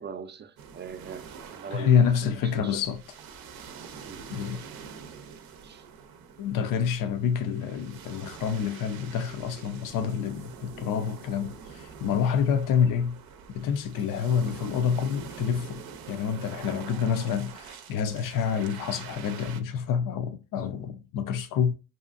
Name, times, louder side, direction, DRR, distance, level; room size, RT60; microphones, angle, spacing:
voice 1, 0.0-2.8 4.0-4.6 5.6-5.8 8.0-8.1, right 6 dB, 30° right, 0.4 m, -41 dB
sound 1, 0.6-19.6, right 6 dB, 75° right, 0.6 m, -45 dB
voice 2, 1.7-3.0 4.3-4.6 6.4-13.2 13.5-15.8 16.1-21.7, left 7 dB, 60° left, 0.5 m, -27 dB
2.7 x 2.4 x 2.4 m
supercardioid pair, 65°, 36 cm